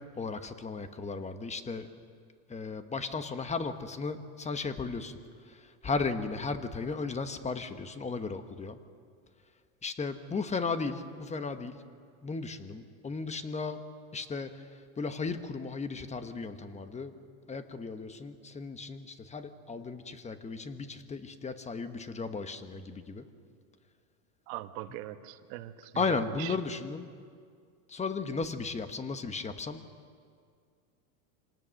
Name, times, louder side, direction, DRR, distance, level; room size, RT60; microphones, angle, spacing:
voice 1, 0.2-1.9 2.5-5.2 5.5-8.8 9.8-11.8 12.2-13.8 14.1-14.5 15.0-17.1 17.5-23.2 25.9-27.1 27.9-29.8, left 4 dB, 15° left, 9 dB, 1.1 m, -35 dB
voice 2, 24.5-26.6, right 14 dB, 65° right, 9 dB, 1.4 m, -41 dB
26.5 x 19.0 x 6.5 m, 2.2 s
supercardioid pair, 125°, 45 cm